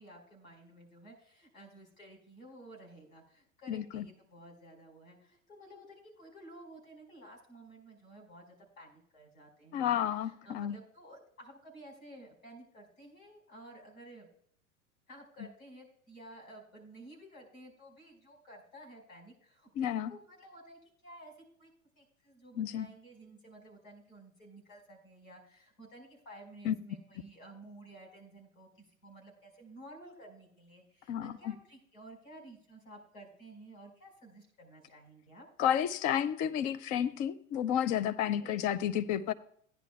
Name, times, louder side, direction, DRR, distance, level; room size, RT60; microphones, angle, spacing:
voice 1, 0.0-14.3 15.1-21.3 21.6-21.7 22.0-35.5 38.4-38.6, right 1 dB, 75° left, 4.8 m, -53 dB
voice 2, 3.7-4.1 9.7-10.8 19.8-20.1 22.6-22.9 26.7-26.8 31.1-31.3 35.6-39.3, left 10 dB, 20° left, 0.3 m, -31 dB
16.0 x 10.0 x 2.2 m
figure-of-eight pair, 90°, 42 cm